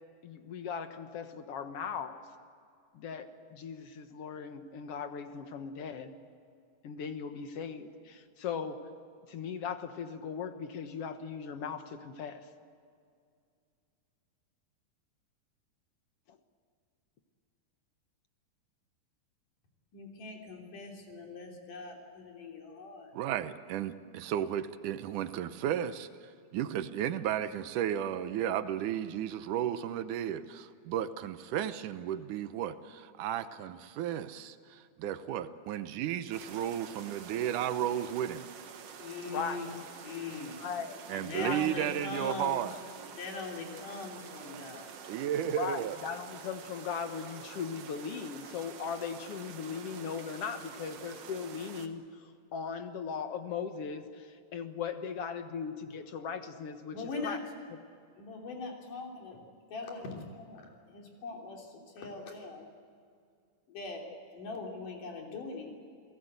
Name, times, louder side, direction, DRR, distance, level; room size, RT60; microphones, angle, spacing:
voice 1, 0.2-2.2 2.9-6.1 6.8-8.8 9.3-12.5 16.3-16.4 39.3-39.6 40.6-41.0 41.4-41.6 45.4-57.0 57.2-57.4, left 6 dB, 55° left, 8 dB, 1.9 m, -38 dB
voice 2, 19.9-23.1 39.0-39.7 40.0-40.7 41.1-44.9 56.9-57.4 58.2-59.4 59.7-62.7 63.7-65.7, left 3 dB, 80° left, 0 dB, 4.8 m, -41 dB
voice 3, 23.1-38.5 41.1-42.7 44.5-44.6 45.1-46.0, right 10 dB, 80° right, 12 dB, 2.3 m, -34 dB
sound 1, 36.3-51.9, right 7 dB, 55° right, 2.1 m, -48 dB
29.0 x 17.5 x 8.1 m, 2.3 s
omnidirectional pair, 3.7 m